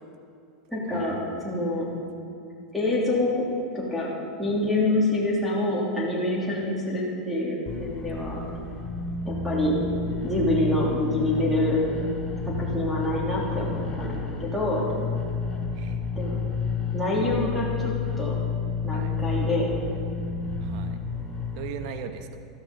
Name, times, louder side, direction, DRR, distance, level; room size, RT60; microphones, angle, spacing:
voice 1, 0.7-1.9 2.7-3.4 3.7-4.1 4.4-8.4 9.2-9.8 10.2-11.8 12.6-14.8 16.2-16.4 16.9-17.9 18.2-18.4 18.8-19.7, left 1 dB, ahead, -7 dB, 3.3 m, -26 dB
sound 1, 7.7-21.7, left 5 dB, 25° left, 1.9 m, -30 dB
voice 2, 20.6-22.4, right 7 dB, 60° right, 7 dB, 1.3 m, -39 dB
13.5 x 13.0 x 5.5 m, 2.7 s
hypercardioid pair, 100°, 4 cm